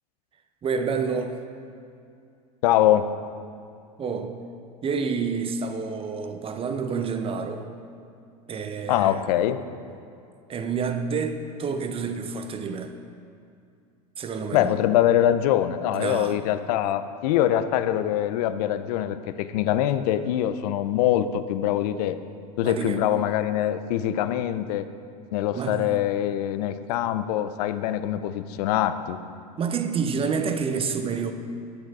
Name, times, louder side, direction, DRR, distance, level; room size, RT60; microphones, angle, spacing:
voice 1, 0.6-1.4 4.0-4.4 4.8-7.7 8.5-9.2 10.5-12.9 14.2-14.7 15.9-16.4 22.6-23.0 25.5-26.0 29.6-31.3, right 5 dB, 25° right, 7 dB, 0.7 m, -28 dB
voice 2, 2.6-3.1 8.9-9.6 14.5-22.2 22.6-24.9 25.3-29.2, left 11 dB, 70° left, 12 dB, 0.5 m, -23 dB
8.1 x 6.6 x 4.8 m, 2.5 s
hypercardioid pair, 90°, 20 cm